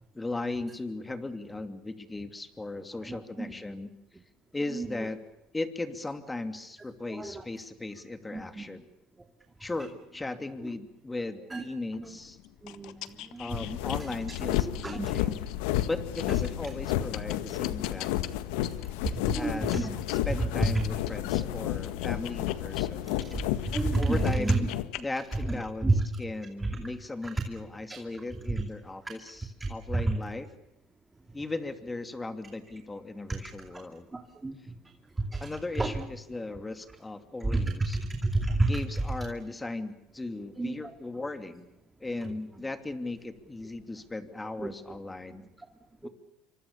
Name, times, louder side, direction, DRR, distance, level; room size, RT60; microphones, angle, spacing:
voice 1, 0.1-3.9 4.5-5.2 5.5-8.9 9.6-12.4 13.4-15.4 15.8-18.1 19.3-19.9 20.2-23.1 24.0-24.7 25.0-30.5 31.3-34.1 35.4-38.0 38.6-41.6 42.0-45.4 46.0-46.1, left 2 dB, 15° left, 9 dB, 2.8 m, -37 dB
voice 2, 3.1-3.5 4.7-5.0 7.1-7.4 8.3-8.7 11.5-11.6 12.0-12.2 12.6-13.6 14.8-15.3 18.8-20.0 20.6-20.9 23.2-24.7 25.3-26.0 26.6-26.8 27.2-27.3 27.9-28.0 29.6-30.2 34.1-34.5 35.2-35.5 35.8-36.0 37.5-38.8 40.6-40.9 44.6-44.7 46.0-46.1, right 2 dB, 15° right, 4 dB, 2.6 m, -30 dB
sound 1, 11.9-23.8 24.2-25.6, left 15 dB, 70° left, 1.4 m, -44 dB
sound 2, 13.5-24.9, left 13 dB, 85° left, 1.5 m, -31 dB
27.5 x 25.0 x 7.0 m, 0.88 s
supercardioid pair, 105°, 0 cm